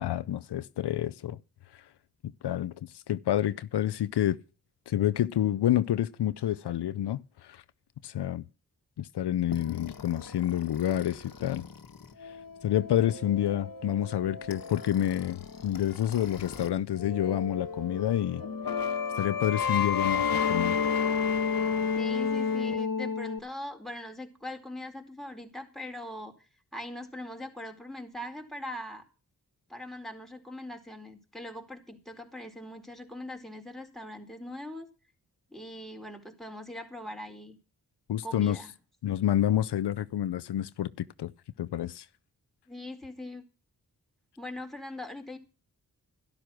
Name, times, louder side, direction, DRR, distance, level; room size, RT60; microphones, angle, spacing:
voice 1, 0.0-1.4 2.4-4.4 4.9-7.6 8.0-8.4 9.0-11.7 12.2-12.3 12.6-18.4 19.2-20.8 38.1-38.6 39.0-41.3 41.6-42.1, left 11 dB, 85° left, 0.7 m, -28 dB
sound 1, 9.5-16.7 17.0-23.4, left 6 dB, 60° left, 1.7 m, -32 dB
voice 2, 21.9-26.3 26.7-29.0 29.7-34.9 35.5-37.6 38.2-38.7 42.7-43.4 44.4-45.4, left 1 dB, ahead, 4.2 m, -41 dB
12.0 x 12.0 x 6.1 m
cardioid pair, 40°, 39 cm